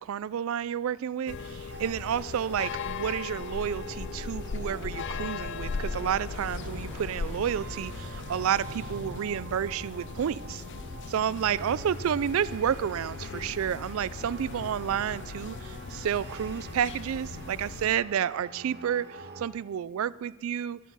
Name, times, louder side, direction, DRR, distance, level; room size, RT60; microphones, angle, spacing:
voice 1, 0.0-10.6 11.1-20.8, right 8 dB, 70° right, 20 dB, 0.3 m, -30 dB
sound 1, 1.3-17.9, left 5 dB, 55° left, 0.5 m, -39 dB
sound 2, 1.7-19.5, right 2 dB, 50° right, 0.9 m, -45 dB
sound 3, 5.4-11.1, equal, 10° left, 5.0 m, -48 dB
15.5 x 11.5 x 5.5 m, 1.2 s
head